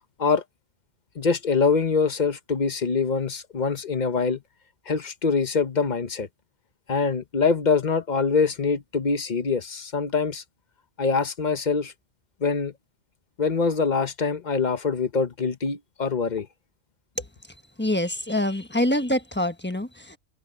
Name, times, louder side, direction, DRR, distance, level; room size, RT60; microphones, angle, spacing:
voice 1, 1.1-4.4 4.9-6.3 6.9-10.4 11.0-11.9 12.4-12.7 13.4-16.5, left 5 dB, 35° left, 1.0 m, -24 dB
voice 2, 17.8-20.2, left 1 dB, 10° left, 1.1 m, -25 dB
omnidirectional pair, 1.4 m